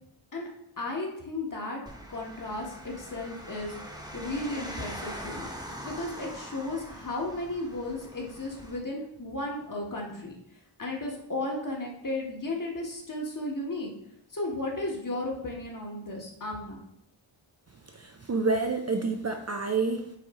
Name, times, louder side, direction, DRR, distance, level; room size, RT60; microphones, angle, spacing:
voice 1, 0.8-1.8 2.1-5.5 5.8-13.9 14.3-16.8, left 2 dB, 40° left, -1 dB, 1.5 m, -34 dB
sound 1, 1.9-8.8, equal, 10° right, 1.2 m, -42 dB
voice 2, 17.9-20.2, right 4 dB, 35° right, 4 dB, 0.5 m, -28 dB
9.0 x 3.2 x 3.7 m, 0.78 s
wide cardioid pair, 105°, 50 cm